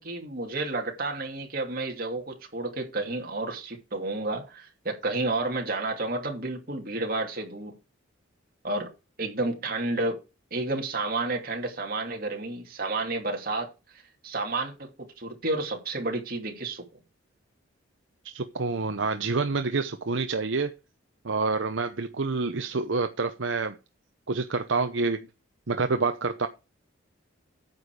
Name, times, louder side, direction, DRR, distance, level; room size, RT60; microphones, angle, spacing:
voice 1, 0.0-7.7 8.6-8.9 9.2-10.2 10.5-13.7 14.2-16.8, right 2 dB, 45° right, 2.6 m, -31 dB
voice 2, 18.3-20.7 21.2-23.7 24.3-25.3 25.7-26.5, right 4 dB, 70° right, 0.8 m, -27 dB
9.5 x 6.8 x 4.8 m
head